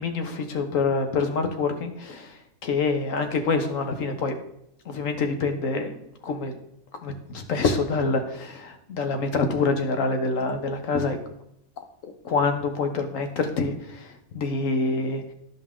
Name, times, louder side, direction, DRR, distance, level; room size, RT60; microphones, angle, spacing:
voice 1, 0.0-4.3 4.8-6.5 7.0-11.2 11.8-15.2, left 4 dB, 65° left, 6 dB, 1.4 m, -26 dB
12.0 x 5.5 x 3.7 m, 0.77 s
omnidirectional pair, 1.5 m